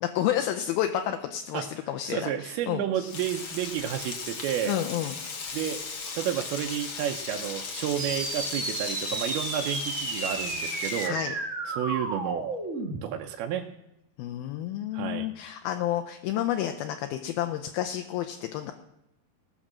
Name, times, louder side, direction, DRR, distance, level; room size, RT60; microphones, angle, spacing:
voice 1, 0.0-3.1 4.6-5.1 11.0-11.3 14.2-18.7, left 11 dB, 80° left, 6 dB, 2.4 m, -30 dB
voice 2, 2.1-4.8 5.5-5.8 6.2-11.2 11.6-12.5 13.0-13.7 14.9-15.3, right 11 dB, 80° right, 3 dB, 2.5 m, -31 dB
Frying (food), 3.1-11.1, left 4 dB, 60° left, 1.3 m, -37 dB
sound 1, 8.0-13.0, right 3 dB, 50° right, 0.8 m, -33 dB
17.5 x 6.4 x 7.4 m, 0.89 s
omnidirectional pair, 4.5 m